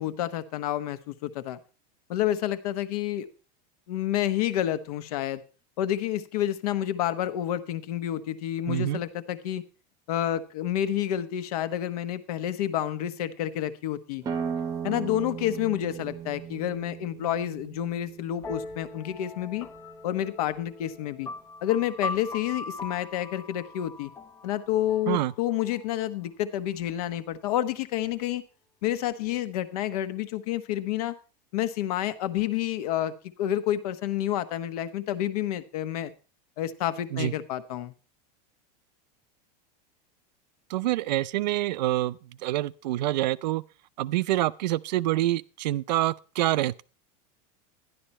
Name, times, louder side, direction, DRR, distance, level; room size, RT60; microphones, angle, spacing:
voice 1, 0.0-1.6 2.1-3.3 3.9-5.4 5.8-9.6 10.1-14.2 14.8-19.7 20.0-21.3 21.6-24.1 24.4-28.4 28.8-31.1 31.5-36.1 36.6-37.9, left 12 dB, 60° left, 1.2 m, -29 dB
voice 2, 8.7-9.0 25.1-25.3 37.1-37.3 40.7-43.6 44.0-46.8, right 15 dB, 85° right, 0.6 m, -26 dB
sound 1, 14.2-19.6, right 7 dB, 15° right, 0.9 m, -37 dB
sound 2, 18.4-26.0, left 3 dB, 10° left, 0.5 m, -40 dB
12.0 x 11.5 x 4.3 m
supercardioid pair, 170°, 21 cm